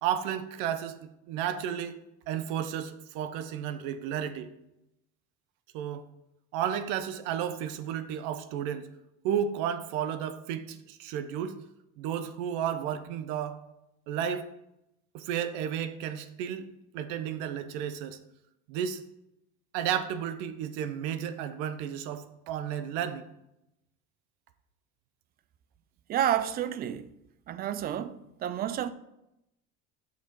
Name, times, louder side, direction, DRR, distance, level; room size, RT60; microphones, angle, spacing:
voice 1, 0.0-2.0 2.3-4.5 5.7-6.0 6.5-8.9 9.2-11.6 12.0-13.6 14.1-14.5 15.1-16.7 16.9-18.2 18.7-19.0 19.7-23.3, right 9 dB, 90° right, 0.8 m, -32 dB
voice 2, 26.1-27.1 27.5-28.9, right 10 dB, 30° right, 0.4 m, -30 dB
7.3 x 6.0 x 4.5 m
cardioid pair, 165°, 29 cm